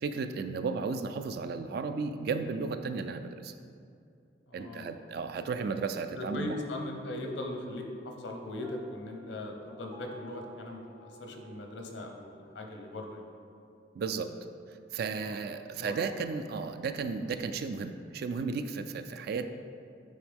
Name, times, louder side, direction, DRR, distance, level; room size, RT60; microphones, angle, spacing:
voice 1, 0.0-3.5 4.5-6.6 13.9-14.3 14.9-19.5, right 4 dB, 55° right, 9 dB, 0.3 m, -34 dB
voice 2, 4.5-4.9 6.1-13.3 15.2-15.4 15.8-16.0, left 2 dB, 85° left, 3 dB, 0.8 m, -39 dB
Piano, 8.6-12.5, right 1 dB, 20° right, 0.6 m, -54 dB
8.9 x 3.6 x 3.5 m, 2.5 s
head